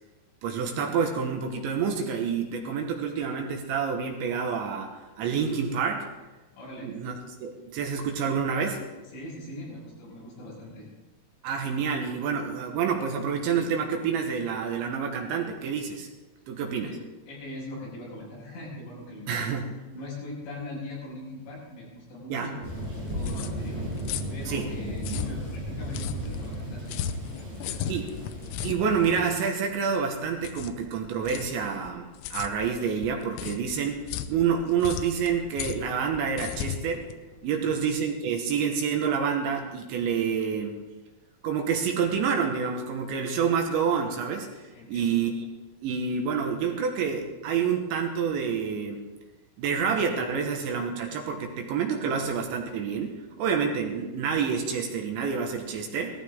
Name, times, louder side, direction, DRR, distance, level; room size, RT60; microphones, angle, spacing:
voice 1, 0.4-4.9 5.2-6.1 6.8-8.8 11.4-16.1 16.5-17.0 19.3-19.8 22.3-22.5 24.5-24.7 27.9-28.1 28.6-37.0 37.4-40.8 41.4-44.6 44.9-45.5 45.8-49.0 49.6-56.2, right 6 dB, 75° right, 2 dB, 3.2 m, -28 dB
voice 2, 6.5-6.9 9.1-10.9 16.5-17.0 17.3-19.6 19.9-23.9 24.3-27.0 27.3-28.0 37.5-37.9 44.7-45.2, left 1 dB, 65° left, -5 dB, 8.6 m, -41 dB
Thunder, 22.6-29.3, equal, 35° right, 5.7 m, -35 dB
sound 1, 22.8-38.0, left 10 dB, 85° left, 3.1 m, -37 dB
18.5 x 14.5 x 3.7 m, 1.2 s
omnidirectional pair, 5.8 m